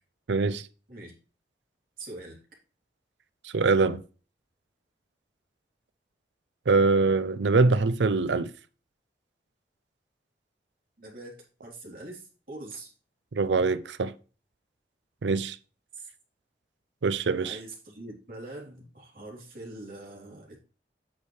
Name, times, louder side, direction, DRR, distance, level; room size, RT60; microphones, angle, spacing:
voice 1, 0.3-0.7 3.4-4.0 6.7-8.5 13.3-14.1 15.2-15.6 17.0-17.6, right 3 dB, 85° right, 0.6 m, -23 dB
voice 2, 2.0-2.4 11.0-12.9 15.9-16.1 17.4-20.6, right 2 dB, 50° right, 3.3 m, -43 dB
8.5 x 6.4 x 3.2 m
head